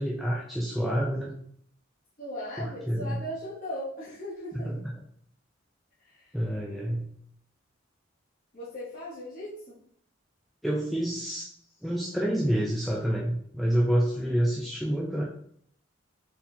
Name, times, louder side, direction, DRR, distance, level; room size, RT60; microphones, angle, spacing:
voice 1, 0.0-1.3 2.6-3.2 4.5-4.9 6.3-7.1 10.6-11.5 11.8-15.2, equal, ahead, -3 dB, 0.3 m, -28 dB
voice 2, 2.2-4.7 6.1-6.3 8.5-9.8 14.2-14.5, equal, 40° left, -9 dB, 0.9 m, -38 dB
4.5 x 3.5 x 2.6 m, 0.65 s
head